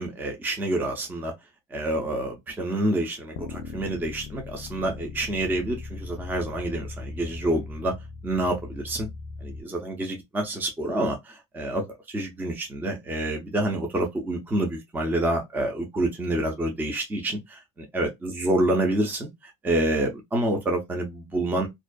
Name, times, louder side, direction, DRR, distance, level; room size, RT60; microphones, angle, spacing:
voice 1, 0.0-1.3 1.7-7.9 8.2-9.1 9.4-21.7, right 1 dB, 10° right, 0.5 m, -28 dB
sound 1, 3.4-9.6, left 4 dB, 70° left, 0.4 m, -39 dB
2.5 x 2.3 x 2.2 m
cardioid pair, 145°, 17 cm